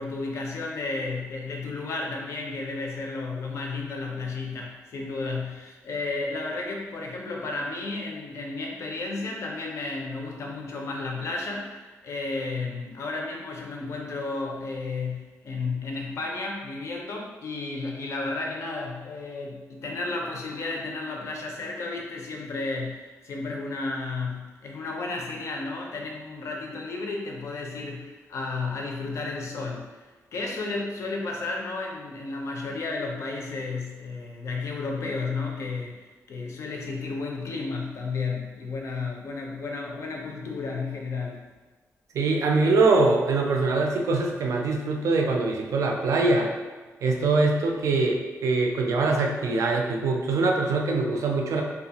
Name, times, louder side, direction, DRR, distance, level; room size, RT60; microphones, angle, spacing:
voice 1, 0.0-30.0 30.3-41.5, left 3 dB, 55° left, 0 dB, 0.4 m, -33 dB
voice 2, 42.1-46.5 47.0-51.6, right 3 dB, 65° right, 1 dB, 0.4 m, -23 dB
2.7 x 2.2 x 2.8 m, 1.3 s
wide cardioid pair, 180°, 6 cm